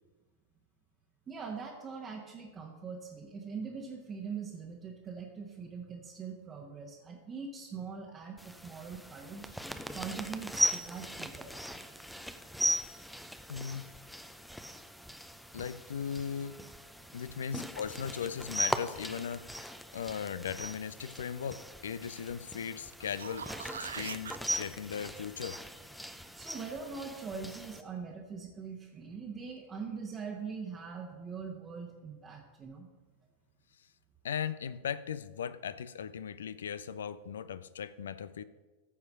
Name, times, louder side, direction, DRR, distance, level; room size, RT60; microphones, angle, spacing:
voice 1, 1.3-9.5 9.9-11.7 17.5-17.7 26.3-32.9, right 5 dB, 25° right, -1 dB, 1.1 m, -42 dB
sound 1, 8.4-27.8, equal, ahead, 0.6 m, -39 dB
voice 2, 13.5-13.9 15.5-16.6 17.1-25.6 34.2-38.4, left 7 dB, 65° left, 15 dB, 0.4 m, -38 dB
sound 2, 22.9-24.4 29.2-29.3, right 7 dB, 70° right, 0.3 m, -42 dB
14.0 x 4.7 x 6.2 m, 1.3 s
figure-of-eight pair, 90°, 0 cm